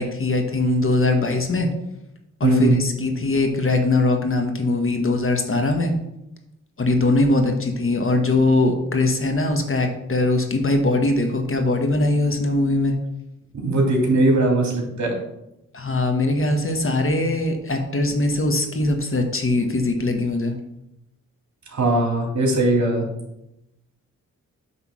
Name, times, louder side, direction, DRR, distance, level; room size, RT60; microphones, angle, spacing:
voice 1, 0.0-1.7 2.4-5.9 6.8-12.9 15.7-20.5, left 2 dB, 45° left, 4 dB, 1.4 m, -21 dB
voice 2, 2.4-2.8 13.6-15.2 21.7-23.1, right 2 dB, 65° right, 0 dB, 2.5 m, -19 dB
8.4 x 3.6 x 6.1 m, 0.86 s
cardioid pair, 70°, 31 cm